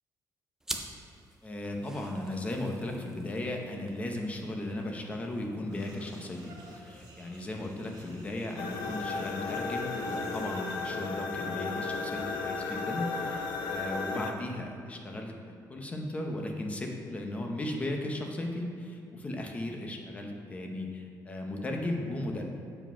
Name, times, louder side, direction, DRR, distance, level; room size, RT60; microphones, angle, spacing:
sound 1, 0.6-9.6, right 1 dB, 5° right, 0.5 m, -48 dB
voice 1, 1.4-22.5, left 1 dB, 20° left, 2 dB, 0.8 m, -36 dB
sound 2, 5.7-10.9, right 1 dB, 75° right, 1.9 m, -54 dB
sound 3, 8.6-14.3, left 4 dB, 80° left, 0.7 m, -34 dB
7.7 x 5.0 x 5.6 m, 2.4 s
cardioid pair, 170°, 7 cm